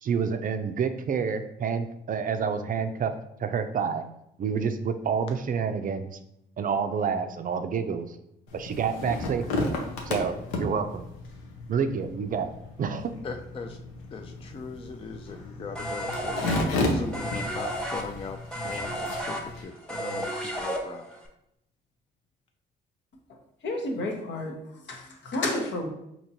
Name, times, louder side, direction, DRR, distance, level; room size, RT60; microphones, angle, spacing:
voice 1, 0.0-3.1 3.4-4.0 4.4-6.2 6.6-8.2 8.5-9.7 10.1-11.0 11.7-12.5 12.8-13.1, right 6 dB, 45° right, 8 dB, 0.4 m, -28 dB
sound 1, 8.5-19.6, left 2 dB, 90° left, 0.7 m, -33 dB
voice 2, 13.2-13.8 14.1-21.1, left 4 dB, 30° left, 4 dB, 0.4 m, -39 dB
sound 2, 15.7-21.2, equal, 5° left, 1.0 m, -33 dB
voice 3, 23.6-24.5 24.9-25.9, left 2 dB, 65° left, 2 dB, 1.0 m, -30 dB
4.4 x 2.9 x 2.7 m, 0.78 s
supercardioid pair, 65°, 20 cm